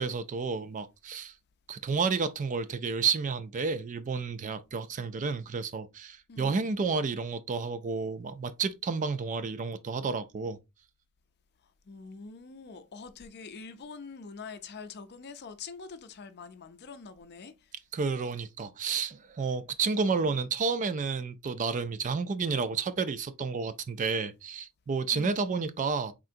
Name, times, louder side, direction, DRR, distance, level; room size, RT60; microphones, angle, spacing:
voice 1, 0.0-1.3 1.7-10.6 17.9-26.1, right 5 dB, 35° right, 0.4 m, -31 dB
voice 2, 6.3-6.6 11.9-17.7 25.1-25.5, left 4 dB, 50° left, 0.5 m, -45 dB
4.5 x 3.7 x 2.5 m
head